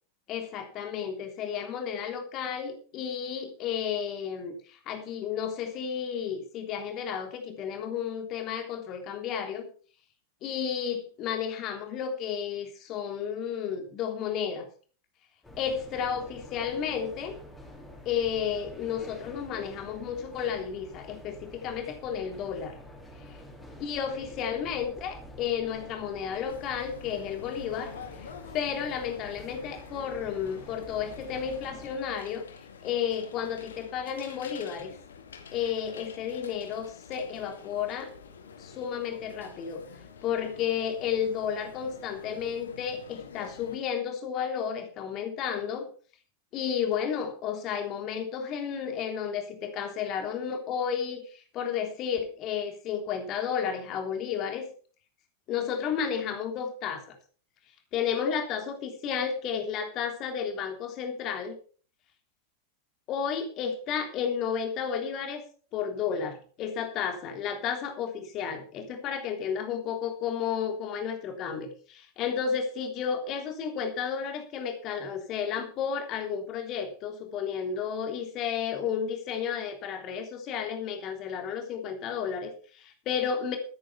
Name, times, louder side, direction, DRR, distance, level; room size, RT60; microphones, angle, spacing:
voice 1, 0.3-9.7 10.4-14.7 15.6-17.4 18.0-22.8 23.3-23.4 23.8-32.4 32.8-34.9 35.5-38.1 38.6-39.8 40.2-45.9 46.5-54.7 55.5-57.2 57.9-61.6 63.1-65.4 65.7-83.6, left 7 dB, 35° left, 5 dB, 3.4 m, -32 dB
sound 1, 15.4-31.9, equal, 10° left, 4.5 m, -48 dB
sound 2, 26.5-43.8, left 6 dB, 65° left, 2.1 m, -48 dB
14.5 x 9.8 x 5.7 m, 0.41 s
figure-of-eight pair, 90°, 0 cm